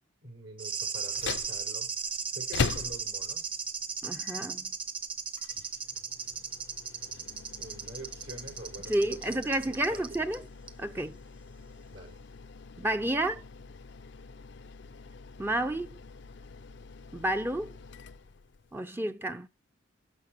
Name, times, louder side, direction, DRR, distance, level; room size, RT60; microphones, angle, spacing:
voice 1, 0.2-3.6 7.6-10.3 11.9-12.2, right 1 dB, 75° right, 5.7 m, -46 dB
sound 1, 0.6-10.4 10.7-10.8, right 6 dB, 25° right, 1.1 m, -36 dB
sound 2, 1.0-18.8, left 5 dB, 65° left, 0.5 m, -42 dB
voice 2, 4.0-4.7 8.9-10.4 10.8-11.2 12.8-13.4 15.4-16.0 17.1-17.8 18.7-19.5, right 1 dB, 10° right, 0.6 m, -30 dB
12.5 x 5.6 x 3.0 m
head